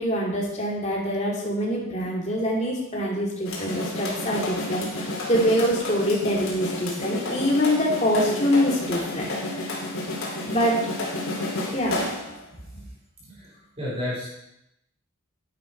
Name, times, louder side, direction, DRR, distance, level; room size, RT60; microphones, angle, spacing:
voice 1, 0.0-9.3 10.5-10.8 11.7-12.0, equal, 30° left, -3 dB, 2.8 m, -24 dB
sound 1, 3.4-12.4, left 2 dB, 75° left, 3.1 m, -31 dB
voice 2, 13.3-14.3, left 1 dB, 30° right, -8 dB, 4.9 m, -32 dB
11.0 x 9.5 x 4.7 m, 0.84 s
head